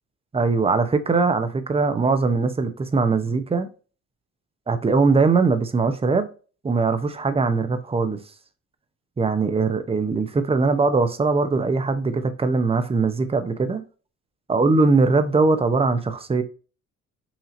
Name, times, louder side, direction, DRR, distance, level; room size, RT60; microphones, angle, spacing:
voice 1, 0.3-3.7 4.7-6.3 6.6-8.2 9.2-13.8 14.5-16.4, right 4 dB, 20° right, 0.7 m, -21 dB
5.8 x 2.8 x 2.6 m
cardioid pair, 90°, 30 cm